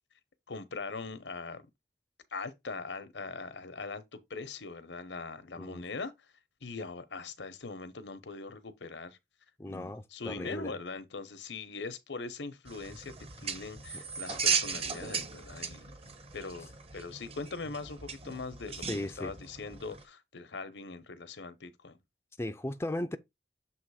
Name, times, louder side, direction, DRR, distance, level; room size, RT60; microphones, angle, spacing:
voice 1, 0.5-1.7 2.3-6.1 6.6-9.2 9.7-15.9 16.3-22.0, left 4 dB, 90° left, 0.9 m, -41 dB
voice 2, 9.6-10.7 13.9-14.0 18.9-19.3 22.4-23.2, left 1 dB, 15° left, 0.4 m, -36 dB
sound 1, 12.7-20.0, right 6 dB, 35° right, 1.0 m, -37 dB
7.2 x 3.0 x 4.8 m
head